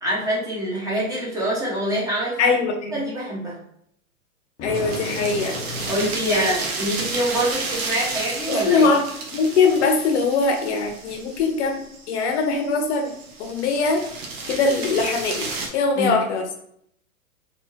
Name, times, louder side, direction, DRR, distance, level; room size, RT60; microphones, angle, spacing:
voice 1, 0.0-2.4 2.9-3.6 5.9-8.9 16.0-16.2, right 1 dB, 10° right, -6 dB, 1.1 m, -25 dB
voice 2, 2.4-3.0 4.6-5.6 6.3-6.5 8.5-9.0 9.3-14.0 14.5-16.4, left 4 dB, 50° left, 4 dB, 0.8 m, -22 dB
Thunder, 4.6-7.1, left 2 dB, 20° left, 0.7 m, -34 dB
sound 1, 4.7-15.7, right 3 dB, 45° right, 0.9 m, -32 dB
3.4 x 3.0 x 2.7 m, 0.69 s
hypercardioid pair, 125°, 44 cm